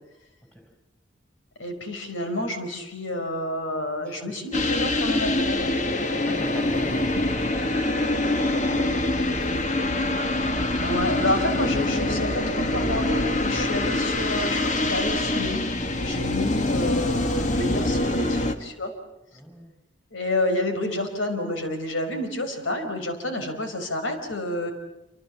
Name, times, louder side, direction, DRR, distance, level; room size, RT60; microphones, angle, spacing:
voice 1, 1.6-5.7 10.8-15.6 15.9-18.9 20.1-24.7, left 1 dB, 90° left, 6 dB, 4.6 m, -29 dB
voice 2, 4.0-4.4 5.9-10.1 19.3-19.8, equal, 5° left, 5 dB, 4.9 m, -44 dB
sound 1, 4.5-18.6, left 1 dB, 40° left, 1.7 m, -25 dB
28.0 x 26.0 x 7.3 m, 0.94 s
head